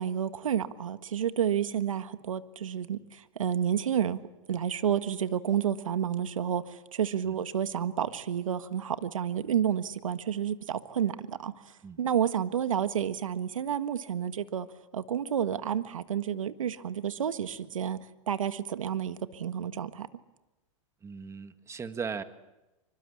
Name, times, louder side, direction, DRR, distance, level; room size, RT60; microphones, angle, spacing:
voice 1, 0.0-4.2 4.5-14.7 14.9-18.0 18.3-20.1, right 9 dB, 85° right, 11 dB, 1.5 m, -30 dB
voice 2, 21.0-22.2, right 5 dB, 15° right, 10 dB, 1.9 m, -37 dB
27.0 x 25.5 x 8.5 m, 1.0 s
hypercardioid pair, 120°, 17 cm